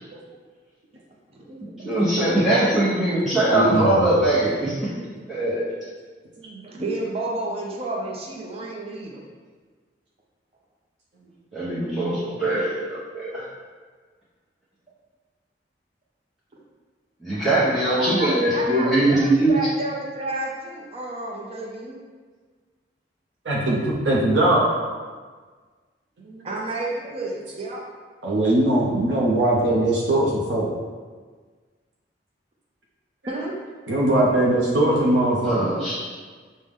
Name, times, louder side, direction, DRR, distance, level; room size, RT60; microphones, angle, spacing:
voice 1, 1.8-4.7 5.3-5.7 11.5-13.4 17.2-19.6 35.4-36.0, right 1 dB, ahead, -11 dB, 0.8 m, -21 dB
voice 2, 3.5-4.1 6.4-6.6 23.4-24.7 26.2-26.5 28.2-30.7 33.9-35.7, right 1 dB, 85° right, -5 dB, 0.7 m, -21 dB
voice 3, 6.6-9.2 17.8-22.0 26.4-27.8 33.3-33.6, right 2 dB, 35° right, -2 dB, 0.5 m, -31 dB
6.2 x 2.1 x 3.5 m, 1.5 s
head